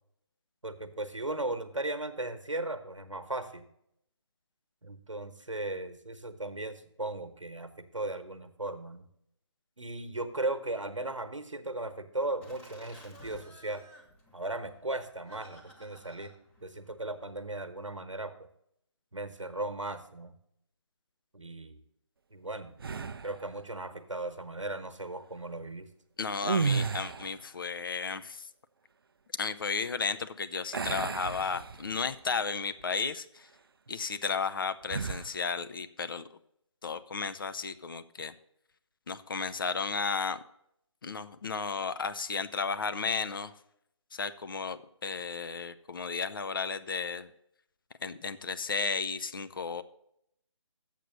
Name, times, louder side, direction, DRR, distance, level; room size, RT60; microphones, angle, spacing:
voice 1, 0.6-3.7 4.8-9.1 9.8-13.8 14.3-16.3 16.6-18.3 19.1-20.3 21.3-21.8 22.3-22.7 23.2-25.9, right 2 dB, 80° right, 9 dB, 1.1 m, -37 dB
Laughter, 12.4-17.6, left 1 dB, 5° left, 0.8 m, -55 dB
sound 1, 22.8-23.4 26.4-27.5 30.7-32.2 32.6-32.8 34.9-35.4, right 5 dB, 50° right, 0.4 m, -33 dB
voice 2, 26.2-28.5 29.4-33.5 33.9-36.3 36.8-38.3 39.1-40.4 41.0-43.5 44.1-47.3 48.0-49.8, left 5 dB, 45° left, 12 dB, 0.5 m, -34 dB
7.5 x 6.8 x 6.6 m, 0.75 s
figure-of-eight pair, 150°, 16 cm